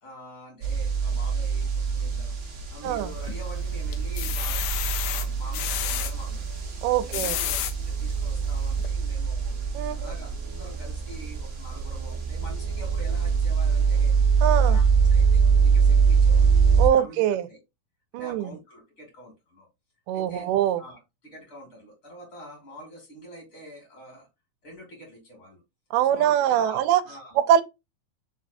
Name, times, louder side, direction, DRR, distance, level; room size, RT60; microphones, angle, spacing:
voice 1, 0.0-7.6 7.9-9.5 9.9-14.2 14.5-16.6 16.9-17.2 17.5-17.6 18.1-19.7 20.1-24.3 24.6-25.6 26.1-27.4, equal, 45° left, 2.5 m, -45 dB
sound 1, 0.6-16.9, right 5 dB, 65° right, 0.8 m, -24 dB
sound 2, 2.8-3.5 3.9-6.1 6.9-7.7 8.3-8.4 8.8-8.9, left 12 dB, 90° left, 1.5 m, -30 dB
voice 2, 6.8-7.4 9.7-10.0 14.4-14.8 16.8-17.5 18.1-18.5 20.1-20.8 25.9-27.0 27.5-27.6, right 11 dB, 90° right, 2.2 m, -23 dB
5.0 x 4.1 x 2.6 m
omnidirectional pair, 3.7 m